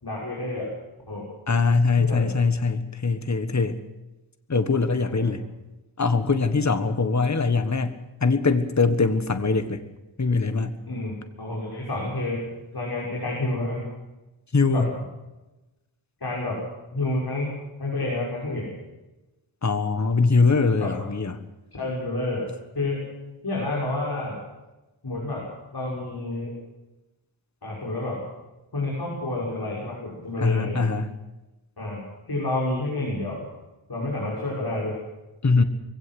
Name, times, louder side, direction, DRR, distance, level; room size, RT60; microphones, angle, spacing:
voice 1, 0.0-0.7 1.1-1.3 2.0-2.3 5.0-5.3 10.9-13.8 14.7-14.8 16.2-16.6 16.9-17.5 17.8-18.7 20.8-20.9 21.7-22.5 22.7-23.0 23.4-24.3 25.0-25.4 25.7-26.5 27.6-28.2 28.7-30.8 31.8-32.0 32.3-33.4 33.9-35.0, left 2 dB, 50° left, -4 dB, 6.7 m, -29 dB
voice 2, 1.5-3.8 4.5-5.4 6.0-9.8 10.2-10.8 14.5-14.9 19.6-21.4 30.4-31.1 35.4-35.6, left 4 dB, 35° left, 10 dB, 1.5 m, -22 dB
22.0 x 16.5 x 7.8 m, 1.0 s
wide cardioid pair, 100°, 48 cm